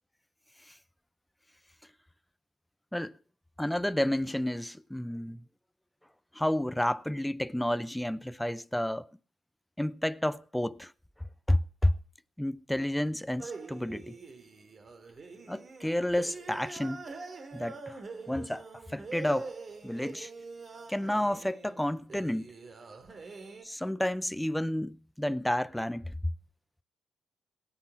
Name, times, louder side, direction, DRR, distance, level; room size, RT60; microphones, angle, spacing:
voice 1, 3.6-5.4 6.4-9.1 9.8-10.9 11.5-11.9 12.4-14.2 15.5-17.0 17.5-18.0 18.3-18.7 18.9-19.5 19.8-20.3 20.9-22.5 23.6-26.1, left 1 dB, 5° left, 0.6 m, -30 dB
sound 1, 13.4-23.6, right 4 dB, 40° right, 2.5 m, -45 dB
17.5 x 11.0 x 5.8 m
cardioid pair, 90°, 0 cm